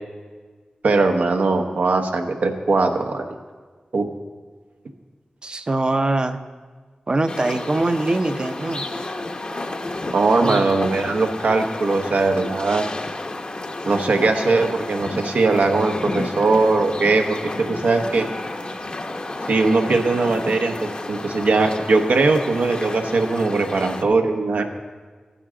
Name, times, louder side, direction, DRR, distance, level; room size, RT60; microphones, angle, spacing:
voice 1, 0.8-3.2 3.9-4.1 10.1-12.9 13.9-18.3 19.5-24.6, right 3 dB, 90° right, 5 dB, 0.9 m, -20 dB
voice 2, 5.4-6.4 7.1-8.8 10.4-10.8, right 2 dB, 35° right, 9 dB, 0.6 m, -23 dB
sound 1, 7.3-24.0, left 2 dB, 40° left, 0.7 m, -31 dB
14.0 x 10.0 x 3.7 m, 1.5 s
wide cardioid pair, 110°, 3 cm